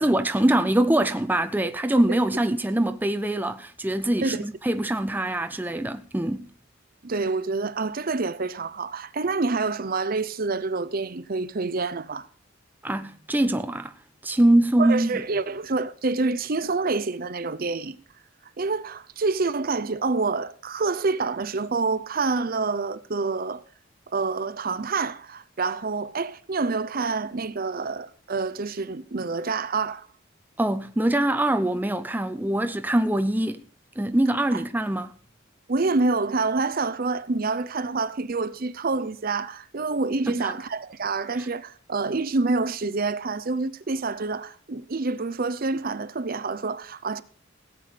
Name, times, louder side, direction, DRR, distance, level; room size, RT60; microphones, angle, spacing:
voice 1, 0.0-6.5 12.8-13.9 14.2-15.1 30.6-33.6 34.0-35.2 40.3-40.5 41.4-41.5, right 1 dB, 10° right, 0.5 m, -23 dB
voice 2, 7.0-12.3 14.8-18.0 18.6-23.6 24.1-30.1 34.5-34.6 35.7-47.2, right 3 dB, 45° right, 0.7 m, -27 dB
17.0 x 8.3 x 5.1 m
head